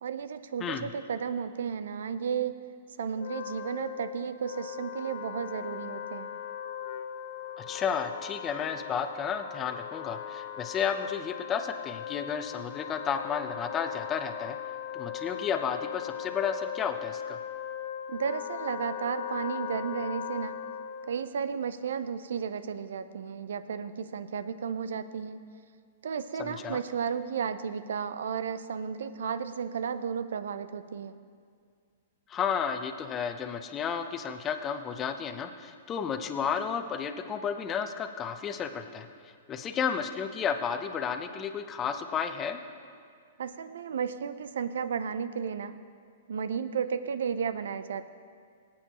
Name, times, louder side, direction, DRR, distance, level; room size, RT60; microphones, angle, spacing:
voice 1, 0.0-2.6 3.0-6.3 18.1-20.6 21.0-25.4 26.0-31.2 43.4-45.8 46.3-48.1, right 7 dB, 75° right, 13 dB, 0.5 m, -33 dB
Wind instrument woodwind instrument, 3.1-21.2, left 9 dB, 60° left, 0.7 m, -39 dB
voice 2, 7.6-14.6 14.9-17.4 26.4-26.8 32.3-39.1 39.5-42.6, left 7 dB, 25° left, 7 dB, 0.8 m, -32 dB
19.0 x 8.7 x 3.0 m, 2.1 s
hypercardioid pair, 125°, 0 cm